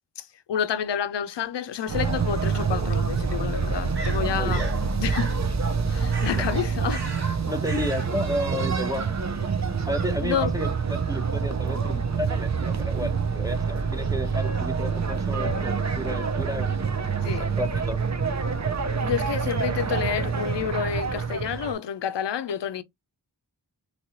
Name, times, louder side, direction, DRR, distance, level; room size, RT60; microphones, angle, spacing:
voice 1, 0.2-4.7 5.0-5.3 5.9-7.1 10.2-10.5 14.0-14.2 17.2-17.5 19.0-22.8, left 8 dB, 80° left, 0.5 m, -29 dB
sound 1, 1.9-21.7, right 5 dB, 40° right, 0.6 m, -26 dB
sound 2, 3.9-4.8 5.1-5.4 6.1-6.6 6.9-7.3 7.6-8.1, right 3 dB, 65° right, 1.2 m, -38 dB
voice 2, 4.3-4.7 6.4-6.5 7.5-9.5 9.9-18.0, equal, 10° right, 0.7 m, -32 dB
3.0 x 2.8 x 2.7 m
wide cardioid pair, 45°, 42 cm